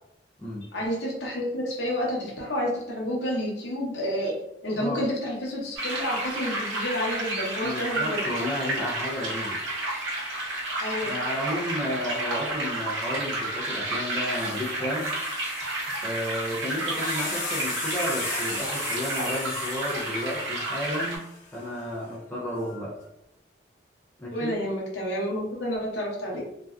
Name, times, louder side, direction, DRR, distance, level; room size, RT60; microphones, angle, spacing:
voice 1, 0.7-4.3 4.6-8.2 10.8-11.1 24.3-26.4, equal, 70° left, -3 dB, 0.8 m, -29 dB
voice 2, 4.8-5.1 7.6-9.6 11.0-15.1 16.0-21.3 21.5-22.9 24.2-24.5, left 1 dB, 10° left, -6 dB, 0.5 m, -32 dB
sound 1, 5.8-21.2, right 1 dB, 80° right, 0.7 m, -31 dB
sound 2, 13.9-14.0 14.3-21.7 22.6-23.0, left 3 dB, 40° left, 0.8 m, -37 dB
2.6 x 2.2 x 2.3 m, 0.83 s
head